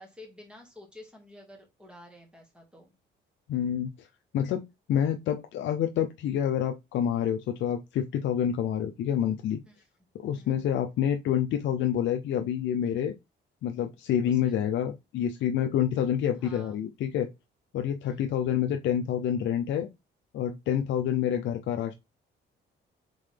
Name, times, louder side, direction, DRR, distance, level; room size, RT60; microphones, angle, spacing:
voice 1, 0.0-2.9 9.7-9.9 10.4-10.7 14.2-14.5 16.4-16.7 18.0-18.4, left 1 dB, 5° right, 1.9 m, -51 dB
voice 2, 3.5-4.1 4.3-4.6 4.9-9.6 10.2-13.2 13.6-17.3 17.7-19.9 20.3-21.9, left 9 dB, 70° left, 0.5 m, -28 dB
3.7 x 3.7 x 3.3 m
cardioid pair, 90°, 20 cm